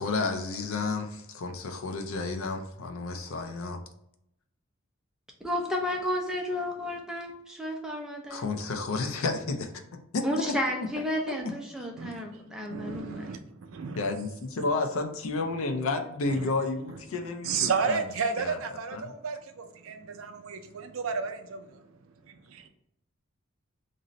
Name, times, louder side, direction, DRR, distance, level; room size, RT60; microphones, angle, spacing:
voice 1, 0.0-3.8 8.3-9.7 10.1-10.5 14.0-18.0 18.4-18.6 18.9-19.1, left 3 dB, 75° left, 6 dB, 0.4 m, -31 dB
voice 2, 5.4-8.5 10.2-13.3, equal, 5° right, 0 dB, 0.4 m, -32 dB
voice 3, 12.0-14.0 14.6-14.7 16.3-16.5 16.9-17.0 17.4-21.9 22.3-22.7, right 5 dB, 70° right, 7 dB, 0.4 m, -33 dB
2.6 x 2.0 x 3.8 m, 0.77 s
head